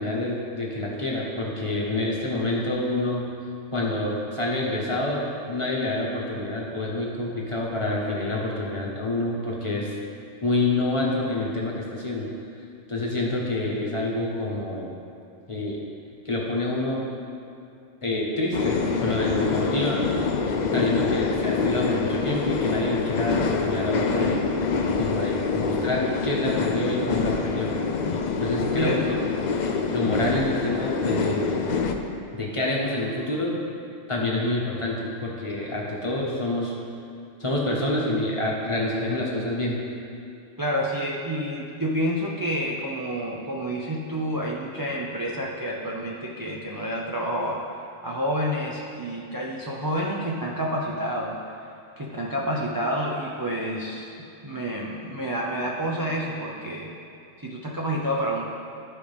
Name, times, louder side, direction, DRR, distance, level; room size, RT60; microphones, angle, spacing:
voice 1, 0.0-3.3 3.7-9.9 10.4-12.3 12.9-14.9 15.5-15.8 16.2-17.1 18.0-20.1 20.7-24.4 25.0-27.7 28.4-29.0 29.9-31.6 32.3-33.5 34.1-36.7 37.4-39.8, left 2 dB, 25° left, -4 dB, 1.1 m, -27 dB
sound 1, 18.5-31.9, left 4 dB, 55° left, 0.5 m, -26 dB
voice 2, 28.8-29.2 40.6-47.7 48.0-51.4 52.0-54.1 54.4-56.9 57.4-58.4, equal, 25° right, -4 dB, 0.5 m, -29 dB
13.5 x 4.9 x 3.4 m, 2.5 s
omnidirectional pair, 1.3 m